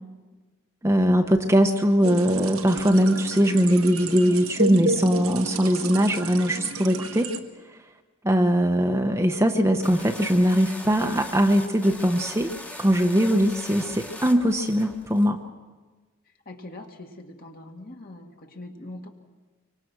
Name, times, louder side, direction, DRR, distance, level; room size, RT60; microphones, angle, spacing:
voice 1, 0.8-7.3 8.2-12.5 12.8-15.4, equal, 15° right, 4 dB, 0.9 m, -21 dB
sound 1, 2.0-7.4, right 3 dB, 80° right, 1.5 m, -31 dB
sound 2, 9.8-15.3, left 1 dB, 5° left, 1.3 m, -40 dB
voice 2, 16.5-19.1, left 2 dB, 45° left, 3 dB, 2.1 m, -42 dB
25.0 x 24.5 x 6.2 m, 1.3 s
head